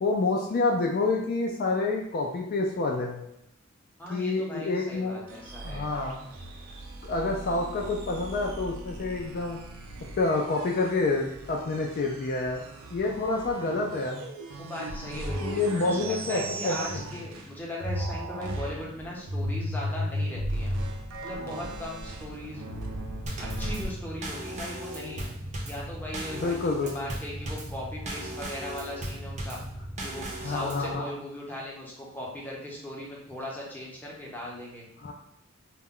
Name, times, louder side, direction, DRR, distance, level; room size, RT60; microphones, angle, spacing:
voice 1, 0.0-3.2 4.1-5.2 5.6-6.2 7.0-9.6 10.2-12.6 12.9-14.2 15.4-17.0 26.3-27.1 30.4-31.1 35.0-35.1, left 3 dB, 50° left, 0 dB, 0.3 m, -28 dB
voice 2, 4.0-5.9 14.6-20.7 21.2-22.8 23.4-25.3 25.7-29.6 30.0-34.8, left 1 dB, 10° left, -4 dB, 0.7 m, -38 dB
sound 1, 5.3-17.6 17.8-23.9, equal, 90° right, 0.4 m, -36 dB
Drum kit / Snare drum / Bass drum, 23.3-30.9, right 1 dB, 35° right, 0.5 m, -37 dB
2.2 x 2.0 x 3.6 m, 0.80 s
head